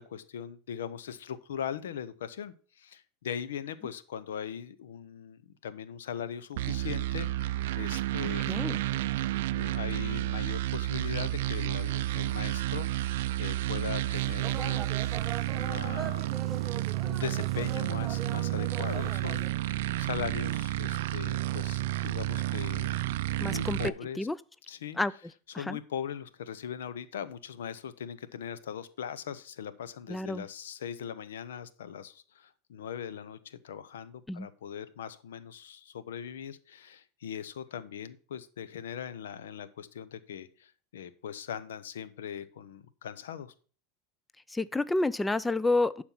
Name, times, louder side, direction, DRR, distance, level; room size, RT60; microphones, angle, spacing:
voice 1, 0.0-8.4 8.8-14.8 15.5-16.3 17.0-22.9 23.5-24.3 24.7-25.0 25.6-43.5, left 8 dB, 90° left, 15 dB, 0.7 m, -40 dB
sound 1, 6.6-23.9, right 15 dB, 75° right, 0.4 m, -31 dB
voice 2, 8.5-8.8 23.4-23.8 24.2-24.4 25.0-25.1 25.5-25.8 30.1-30.5 34.3-34.5 44.5-46.0, left 2 dB, 10° left, 18 dB, 0.3 m, -29 dB
sound 2, 14.1-19.5, right 7 dB, 30° right, 0.9 m, -42 dB
11.5 x 4.4 x 5.5 m, 0.40 s
supercardioid pair, 115°, 0 cm